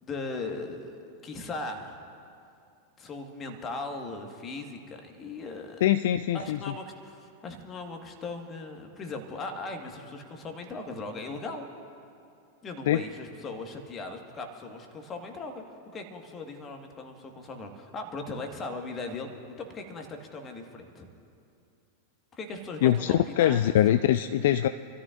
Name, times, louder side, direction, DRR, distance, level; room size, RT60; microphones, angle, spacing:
voice 1, 0.0-2.0 3.0-5.8 6.3-11.7 12.6-15.6 15.9-19.3 19.6-21.1 22.3-23.8, left 3 dB, 25° left, 4 dB, 1.7 m, -38 dB
voice 2, 5.8-6.6 12.9-13.0 22.8-24.7, left 12 dB, 55° left, 11 dB, 0.3 m, -23 dB
28.0 x 13.5 x 2.6 m, 2.6 s
figure-of-eight pair, 90°, 0 cm